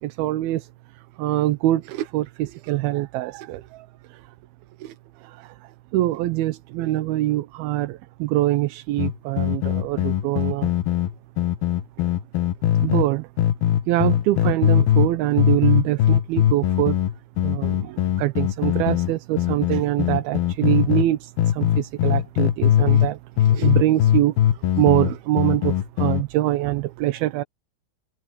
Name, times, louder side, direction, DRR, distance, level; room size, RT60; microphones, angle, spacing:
voice 1, 0.0-0.7 1.2-4.2 4.8-4.9 5.2-5.6 5.9-10.7 12.8-13.3 13.9-17.0 17.4-27.4, right 15 dB, 80° right, 2.7 m, -24 dB
sound 1, 9.0-13.1 13.4-15.1 15.4-21.1 21.4-23.1 23.4-26.2, left 11 dB, 80° left, 2.9 m, -20 dB
omnidirectional pair, 4.3 m